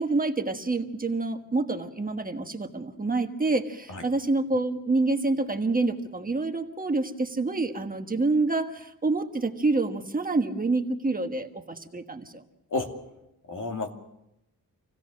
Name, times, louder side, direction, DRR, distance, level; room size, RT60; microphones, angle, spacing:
voice 1, 0.0-12.4, right 3 dB, 25° right, 5 dB, 1.3 m, -27 dB
voice 2, 12.7-13.0 13.5-13.9, left 3 dB, 60° left, 3 dB, 2.6 m, -31 dB
26.5 x 16.5 x 6.4 m, 0.88 s
wide cardioid pair, 130°, 34 cm